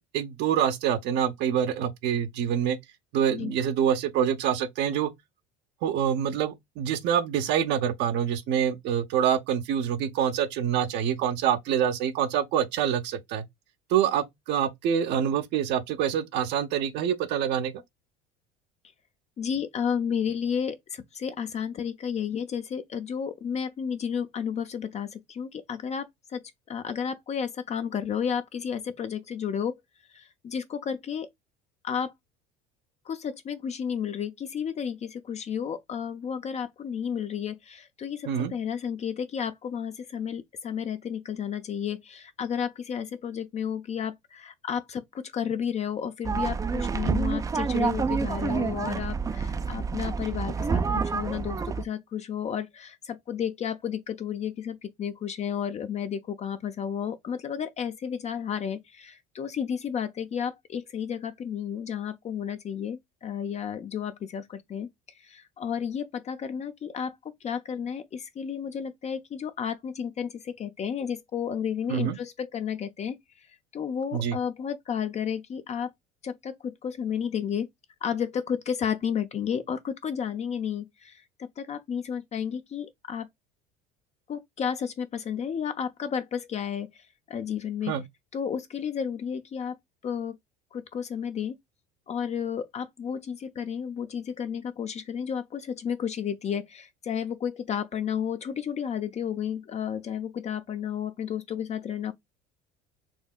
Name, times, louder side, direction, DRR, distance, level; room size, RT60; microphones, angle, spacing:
voice 1, 0.1-2.8 3.1-5.1 5.8-13.4 13.9-17.8 38.3-38.5 71.9-72.1 74.1-74.4 87.9-88.0, right 9 dB, 60° right, 0.8 m, -26 dB
voice 2, 19.4-29.8 30.1-31.3 31.8-32.1 33.1-64.9 65.2-73.2 73.7-75.9 76.2-77.7 78.0-83.3 84.3-87.9 88.3-89.8 90.0-90.4 90.7-91.6 92.1-102.1, left 8 dB, 35° left, 0.5 m, -32 dB
sound 1, 46.2-51.8, right 5 dB, 15° right, 0.4 m, -28 dB
4.3 x 2.7 x 2.3 m
hypercardioid pair, 85°, 20 cm